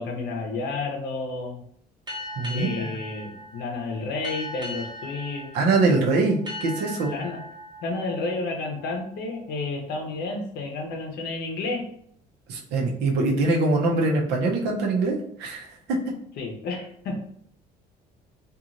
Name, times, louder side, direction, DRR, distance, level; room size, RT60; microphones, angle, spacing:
voice 1, 0.0-1.6 2.5-5.5 7.0-7.4 7.8-11.9 16.4-17.3, left 3 dB, 75° left, 3 dB, 0.7 m, -31 dB
sound 1, 2.1-9.4, left 1 dB, 25° right, 0.8 m, -39 dB
voice 2, 2.4-2.9 5.5-7.1 12.5-15.7, right 3 dB, 80° right, 0 dB, 0.7 m, -23 dB
2.9 x 2.4 x 2.5 m, 0.68 s
cardioid pair, 110°, 17 cm